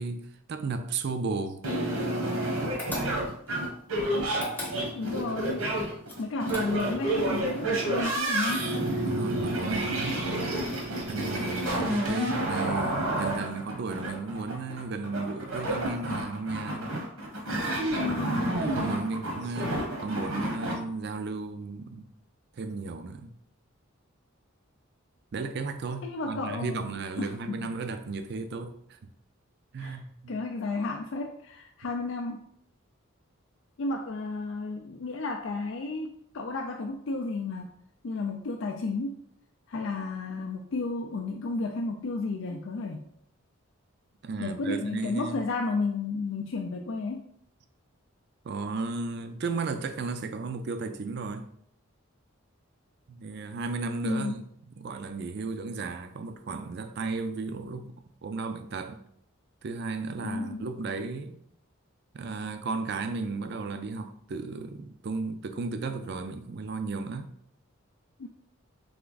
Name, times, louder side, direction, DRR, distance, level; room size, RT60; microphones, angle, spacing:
voice 1, 0.0-1.6 9.0-10.3 11.1-17.0 18.4-22.1 22.5-23.3 25.3-29.0 29.7-30.3 44.2-45.4 48.4-51.5 53.1-54.4 54.8-59.0 59.6-61.4 62.1-67.3, right 4 dB, 50° right, 0.4 m, -34 dB
sound 1, 1.6-20.7, right 1 dB, 80° right, 1.2 m, -30 dB
sound 2, 2.8-3.5 4.3-5.2 6.1-7.0, left 1 dB, 10° left, 0.7 m, -37 dB
voice 2, 4.9-5.7 6.2-8.8 17.9-18.6 26.0-26.9 27.2-27.7 29.8-30.0 30.3-32.5 33.8-37.7 38.0-39.2 39.7-43.1 44.4-47.3 54.0-54.4 60.2-60.6 68.2-68.3, left 3 dB, 60° left, 0.4 m, -32 dB
3.5 x 3.3 x 3.9 m
head